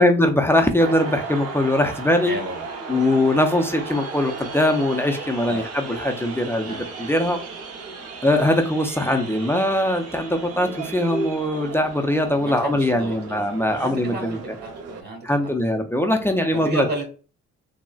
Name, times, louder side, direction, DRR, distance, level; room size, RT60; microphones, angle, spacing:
voice 1, 0.0-2.4 2.9-7.4 8.2-14.6 15.2-16.9, left 1 dB, 10° left, 5 dB, 0.4 m, -21 dB
sound 1, 0.8-15.0, right 4 dB, 55° right, 0.6 m, -35 dB
voice 2, 2.3-2.7 5.5-5.6 6.6-6.9 12.4-13.4 13.7-15.4 16.5-17.1, right 1 dB, 35° right, 0 dB, 1.4 m, -32 dB
3.7 x 2.0 x 2.3 m, 0.37 s
cardioid pair, 90°, 30 cm